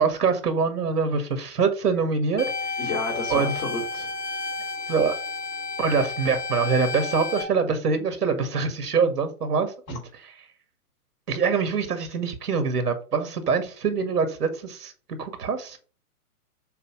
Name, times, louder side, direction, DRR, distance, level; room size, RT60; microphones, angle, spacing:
voice 1, 0.0-2.5 3.3-3.5 4.9-5.2 5.8-10.0 11.3-15.8, right 5 dB, 80° right, 1.7 m, -24 dB
sound 1, 2.4-7.4, left 4 dB, 85° left, 3.6 m, -31 dB
voice 2, 2.8-4.2 9.9-10.0, left 3 dB, 60° left, 3.2 m, -31 dB
6.8 x 2.7 x 5.3 m
hypercardioid pair, 125°, 46 cm